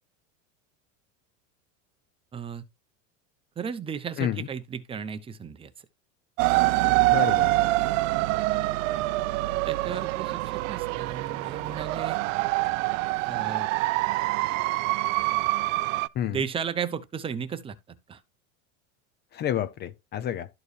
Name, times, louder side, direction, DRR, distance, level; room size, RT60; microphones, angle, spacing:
voice 1, 2.3-2.6 3.6-5.9 6.8-7.1 9.6-12.2 13.3-13.7 16.3-18.2, right 7 dB, 15° right, 0.7 m, -35 dB
voice 2, 4.2-4.5 7.1-7.5 16.1-16.4 19.3-20.5, left 10 dB, 25° left, 0.6 m, -29 dB
sound 1, 6.4-16.1, right 20 dB, 70° right, 0.6 m, -25 dB
12.5 x 4.6 x 3.2 m
supercardioid pair, 155°, 39 cm